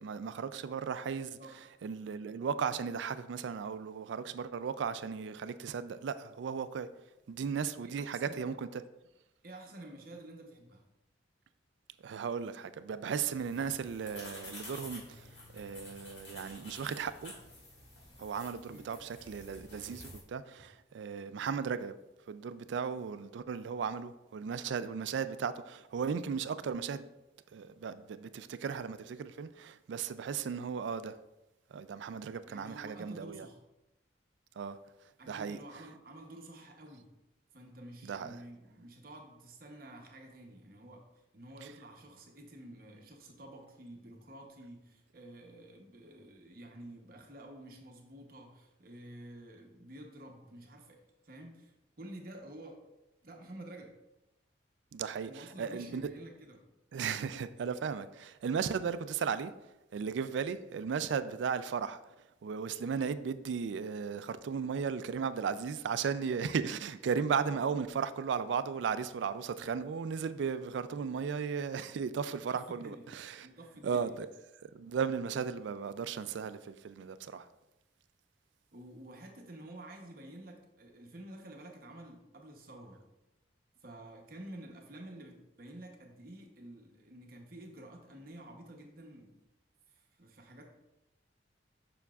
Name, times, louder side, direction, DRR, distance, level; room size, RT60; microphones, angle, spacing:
voice 1, 0.0-1.4 1.8-6.9 7.3-8.8 12.0-17.3 18.2-21.9 22.3-27.1 27.5-31.2 31.7-33.5 34.6-34.8 35.3-35.6 38.0-38.4 54.9-55.3 55.6-56.0 56.9-59.5 59.9-62.0 62.4-73.5 73.8-74.3 74.7-77.5, right 6 dB, 70° right, 0.3 m, -36 dB
voice 2, 7.8-8.5 9.4-10.8 18.7-18.8 32.5-33.6 35.2-37.1 37.5-41.0 41.3-52.8 53.2-53.9 55.3-56.6 72.5-73.1 73.4-74.2 78.7-83.0 83.8-89.4 89.9-90.7, right 1 dB, 50° right, 0.9 m, -50 dB
sound 1, 13.4-20.2, left 1 dB, 65° left, 2.0 m, -50 dB
7.0 x 5.9 x 2.4 m
head